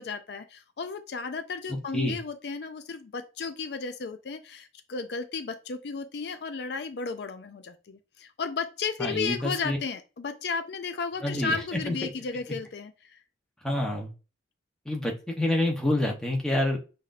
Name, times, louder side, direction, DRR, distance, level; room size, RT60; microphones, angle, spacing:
voice 1, 0.0-13.2, left 5 dB, 60° left, 9 dB, 0.4 m, -34 dB
voice 2, 9.0-9.8 11.2-11.6 11.9-12.0 13.6-14.1 14.9-16.8, left 1 dB, 5° left, -1 dB, 0.8 m, -27 dB
5.7 x 2.7 x 2.5 m, 0.32 s
head